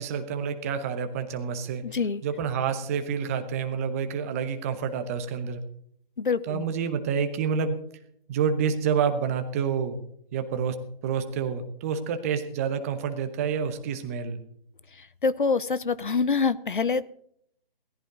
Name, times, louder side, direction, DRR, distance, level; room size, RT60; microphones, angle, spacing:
voice 1, 0.0-1.8 2.2-5.6 6.5-7.8 8.3-10.0 10.3-14.4, right 6 dB, 15° right, 8 dB, 1.0 m, -28 dB
voice 2, 1.8-2.2 6.2-6.6 15.2-17.1, left 4 dB, 60° left, 18 dB, 0.8 m, -25 dB
17.5 x 15.5 x 3.9 m, 0.67 s
figure-of-eight pair, 145°, 30 cm